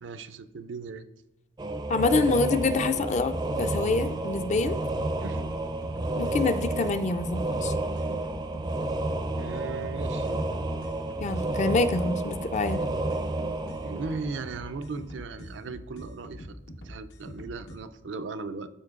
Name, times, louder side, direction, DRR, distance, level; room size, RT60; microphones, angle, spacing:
voice 1, 0.0-1.0 5.2-5.4 9.4-10.4 13.8-16.6 16.8-18.7, right 4 dB, 80° right, 11 dB, 0.4 m, -37 dB
sound 1, 1.6-15.0, right 2 dB, 25° right, 0.4 m, -31 dB
voice 2, 1.9-4.8 6.2-7.7 11.2-12.8, left 3 dB, 40° left, 10 dB, 0.4 m, -26 dB
sound 2, 2.5-17.8, equal, 80° left, 0.9 m, -44 dB
12.5 x 4.5 x 2.4 m, 0.99 s
head